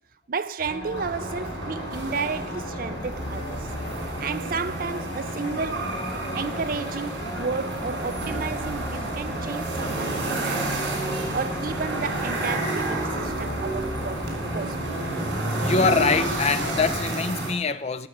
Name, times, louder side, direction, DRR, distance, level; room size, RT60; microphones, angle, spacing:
voice 1, 0.3-3.7 4.2-5.9 6.3-10.9 11.3-14.9, right 5 dB, 50° right, 0.5 m, -32 dB
sound 1, 0.6-17.1, left 1 dB, 85° left, 2.9 m, -36 dB
sound 2, 0.9-17.5, right 2 dB, 85° right, 3.5 m, -30 dB
voice 2, 15.6-18.1, left 4 dB, 35° left, 0.5 m, -24 dB
13.0 x 6.6 x 7.8 m
head